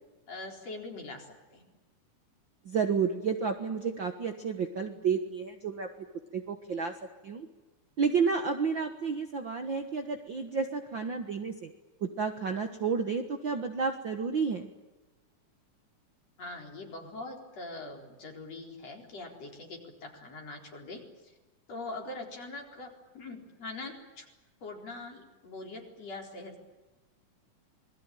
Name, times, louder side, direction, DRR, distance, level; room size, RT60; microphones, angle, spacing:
voice 1, 0.3-1.7 16.4-21.3 21.7-24.3 24.6-26.6, left 2 dB, 55° left, 1 dB, 5.3 m, -43 dB
voice 2, 2.6-5.9 6.3-6.9 7.2-7.5 8.0-11.7 12.0-14.7, right 5 dB, 50° right, 5 dB, 1.5 m, -31 dB
27.0 x 21.5 x 9.1 m, 1.1 s
omnidirectional pair, 3.6 m